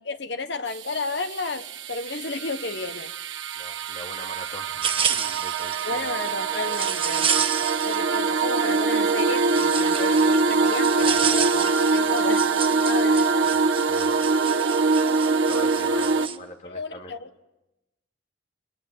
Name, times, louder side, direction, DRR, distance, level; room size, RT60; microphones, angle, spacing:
voice 1, 0.0-3.1 5.8-7.3 7.8-13.5 15.9-16.0 16.6-17.4, left 3 dB, 60° left, 1.4 m, -33 dB
sound 1, 0.7-16.3, right 4 dB, 70° right, 1.4 m, -24 dB
voice 2, 3.5-6.1 13.5-14.2 15.4-17.1, left 1 dB, 35° left, 2.5 m, -42 dB
sound 2, 4.8-8.2 8.5-16.4, right 7 dB, 25° right, 1.1 m, -30 dB
26.5 x 24.0 x 9.2 m
head